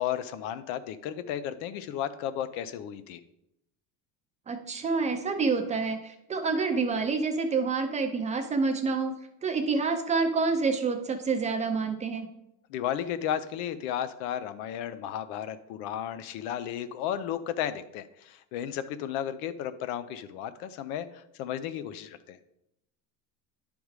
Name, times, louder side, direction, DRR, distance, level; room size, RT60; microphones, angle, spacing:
voice 1, 0.0-3.2 12.7-22.4, left 10 dB, 80° left, 12 dB, 0.7 m, -34 dB
voice 2, 4.5-9.1 9.4-12.3, right 4 dB, 20° right, 5 dB, 0.4 m, -28 dB
10.5 x 3.5 x 4.7 m, 0.83 s
cardioid pair, 160°, 39 cm